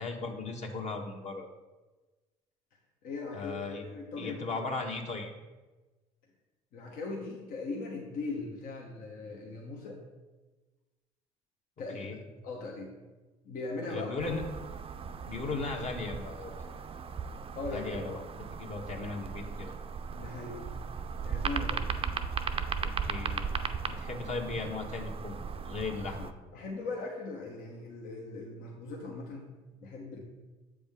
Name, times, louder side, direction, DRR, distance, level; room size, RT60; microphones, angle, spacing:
voice 1, 0.0-1.5 3.3-3.8 4.2-5.3 11.9-12.2 13.9-14.4 15.2-16.7 17.7-18.2 18.6-19.7 22.8-23.6 23.9-26.3, left 3 dB, 45° left, 2 dB, 1.2 m, -37 dB
voice 2, 3.0-3.5 3.8-4.4 6.7-10.0 11.8-12.2 12.4-13.0 13.4-14.1 17.6-18.1 20.2-20.6 21.2-21.9 26.5-29.5 29.8-30.2, left 3 dB, 65° left, -1 dB, 1.1 m, -39 dB
sound 1, 14.2-26.3, right 6 dB, 35° right, 0.5 m, -37 dB
7.3 x 5.0 x 3.6 m, 1.2 s
supercardioid pair, 70°, 16 cm